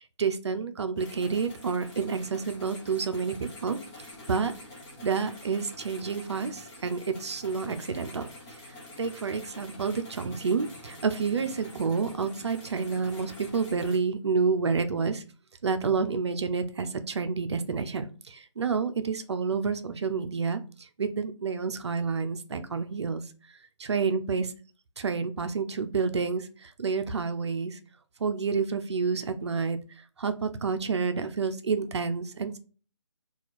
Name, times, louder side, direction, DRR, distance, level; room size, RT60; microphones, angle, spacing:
voice 1, 0.2-3.8 4.3-4.5 5.0-8.3 9.0-15.2 15.6-23.2 23.8-24.5 25.0-27.8 28.2-29.8 30.2-32.6, right 5 dB, 60° right, 9 dB, 0.5 m, -29 dB
sound 1, 1.0-14.0, left 1 dB, 5° left, 0.3 m, -47 dB
2.8 x 2.4 x 4.0 m, 0.38 s
figure-of-eight pair, 150°, 16 cm